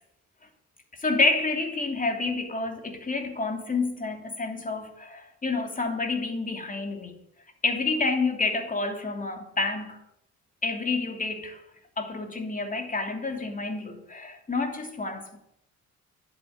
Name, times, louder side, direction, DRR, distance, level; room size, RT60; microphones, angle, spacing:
voice 1, 1.0-7.1 7.6-10.0 10.6-11.6 12.0-15.4, left 3 dB, 25° left, 2.9 m, -29 dB
10.5 x 8.9 x 9.3 m
cardioid pair, 90°, 30 cm